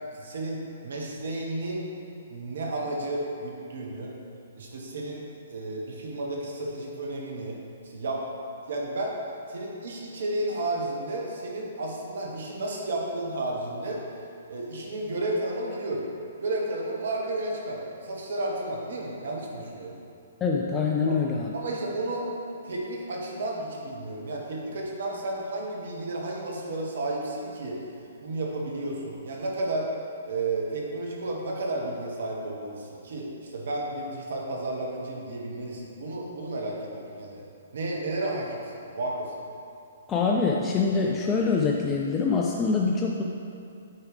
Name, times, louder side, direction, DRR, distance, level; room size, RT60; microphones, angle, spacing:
voice 1, 0.1-1.9 2.3-4.1 4.5-5.2 5.5-8.2 8.7-9.1 9.5-14.0 14.5-16.1 16.4-19.9 21.1-21.2 21.5-22.3 22.6-27.8 28.2-29.9 30.2-37.4 37.7-39.3, right 2 dB, 60° right, -1 dB, 1.2 m, -32 dB
voice 2, 20.4-21.5 40.1-43.2, left 4 dB, 20° left, -1 dB, 0.4 m, -25 dB
8.6 x 4.7 x 3.3 m, 2.5 s
figure-of-eight pair, 120°, 0 cm